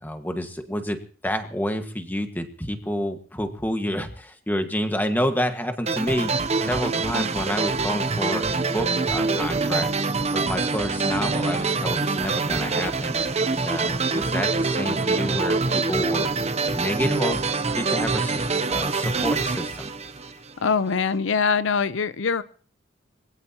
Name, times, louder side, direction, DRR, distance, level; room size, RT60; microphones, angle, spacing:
voice 1, 0.0-6.3 6.6-9.9 10.3-13.2 13.6-16.3 16.7-17.4 17.8-19.9, equal, 10° left, 6 dB, 1.6 m, -29 dB
sound 1, 5.9-20.7, right 3 dB, 35° right, 0.8 m, -25 dB
voice 2, 20.6-22.4, left 5 dB, 75° left, 15 dB, 0.6 m, -23 dB
24.0 x 17.5 x 2.9 m, 0.42 s
head